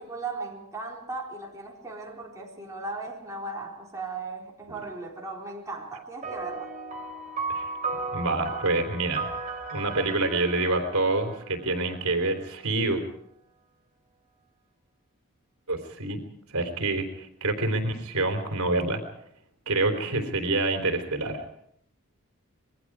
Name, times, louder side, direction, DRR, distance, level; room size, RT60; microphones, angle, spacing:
voice 1, 0.0-6.7, right 3 dB, 15° right, 4.1 m, -37 dB
sound 1, 6.2-12.0, right 4 dB, 35° right, 3.6 m, -35 dB
voice 2, 8.1-9.3 9.7-13.0 15.7-16.2 16.5-19.0 19.7-21.4, right 2 dB, 75° right, 3.5 m, -27 dB
27.0 x 22.0 x 4.8 m
head